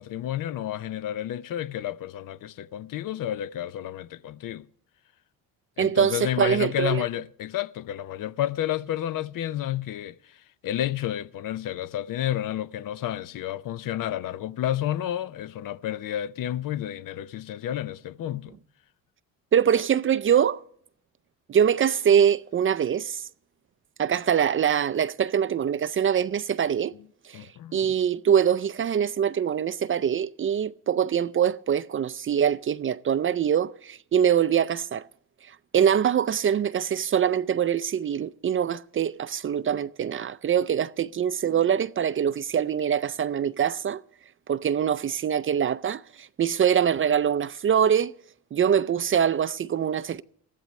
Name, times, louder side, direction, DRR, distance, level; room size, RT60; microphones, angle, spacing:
voice 1, 0.0-4.7 5.8-18.5 27.3-28.0, left 12 dB, 60° left, 0.6 m, -31 dB
voice 2, 5.8-7.0 19.5-20.6 21.5-23.2 24.0-26.9 27.3-35.0 35.7-44.0 44.5-48.1 48.5-50.2, right 8 dB, 35° right, 0.4 m, -24 dB
20.0 x 14.0 x 3.1 m
cardioid pair, 90°, 37 cm